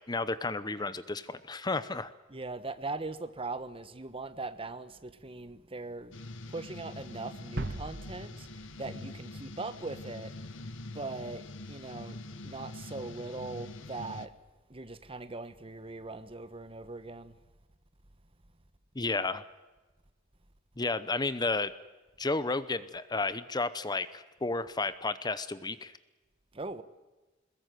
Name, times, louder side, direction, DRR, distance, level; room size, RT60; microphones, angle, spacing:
voice 1, 0.1-2.1 19.0-19.4 20.8-21.7 22.2-25.9, left 3 dB, 20° left, 0.8 m, -32 dB
voice 2, 2.3-10.3 10.9-12.2 12.4-14.3 14.7-17.4 26.5-26.8, right 3 dB, 30° right, 1.2 m, -40 dB
sound 1, 6.1-14.3, left 2 dB, 75° left, 1.3 m, -44 dB
sound 2, 7.6-9.6, right 2 dB, 55° right, 1.1 m, -40 dB
22.0 x 21.0 x 9.3 m
head